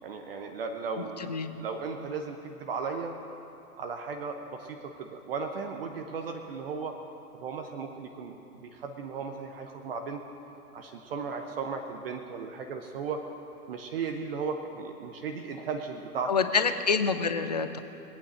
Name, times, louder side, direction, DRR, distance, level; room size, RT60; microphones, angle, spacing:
voice 1, 0.0-1.3 1.6-3.1 3.8-7.0 7.4-10.2 10.7-13.2 13.7-16.3, right 5 dB, 40° right, 4 dB, 0.9 m, -36 dB
voice 2, 1.0-1.6 16.3-17.8, left 5 dB, 30° left, 10 dB, 0.4 m, -27 dB
20.0 x 8.9 x 6.3 m, 2.9 s
figure-of-eight pair, 130°, 47 cm